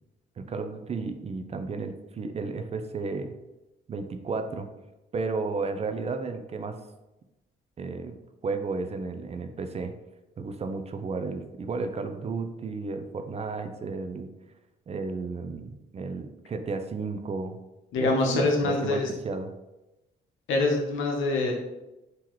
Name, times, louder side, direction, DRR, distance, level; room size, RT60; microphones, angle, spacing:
voice 1, 0.4-3.3 3.9-4.7 5.1-6.8 7.8-9.9 10.4-14.3 14.9-17.6 18.0-19.5, right 4 dB, 30° right, 7 dB, 0.4 m, -33 dB
voice 2, 17.9-19.1 20.5-21.5, left 2 dB, 85° left, 1 dB, 0.8 m, -25 dB
3.8 x 2.9 x 3.0 m, 0.99 s
cardioid pair, 90°, 20 cm